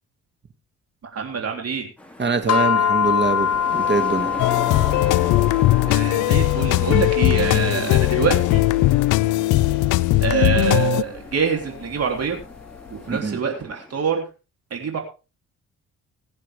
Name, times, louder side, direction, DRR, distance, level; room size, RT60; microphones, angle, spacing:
voice 1, 1.1-1.9 5.9-8.6 10.2-12.4 13.1-14.2 14.7-15.0, right 6 dB, 55° right, 3 dB, 3.4 m, -25 dB
sound 1, 2.0-14.0, left 2 dB, 5° left, 2.9 m, -37 dB
voice 2, 2.2-4.3 13.1-13.4, right 4 dB, 35° right, 8 dB, 2.4 m, -24 dB
sound 2, 2.5-13.0, left 8 dB, 60° left, 1.2 m, -27 dB
sound 3, 4.4-11.0, left 18 dB, 85° left, 0.5 m, -19 dB
22.0 x 7.4 x 3.6 m, 0.32 s
cardioid pair, 90°, 30 cm